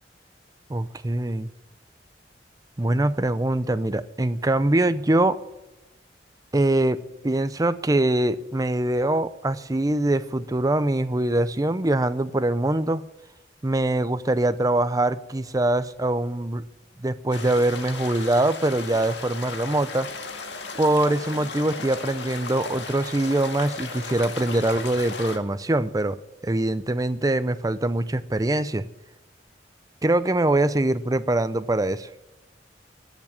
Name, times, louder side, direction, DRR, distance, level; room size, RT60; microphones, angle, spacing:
voice 1, 0.7-1.5 2.8-5.4 6.5-7.0 7.2-13.0 13.6-16.6 17.0-20.1 20.8-26.2 26.4-28.9 30.0-32.1, right 1 dB, 20° right, 13 dB, 0.6 m, -23 dB
sound 1, 17.3-25.4, left 4 dB, 85° left, 1.8 m, -36 dB
14.5 x 7.4 x 9.6 m, 1.0 s
head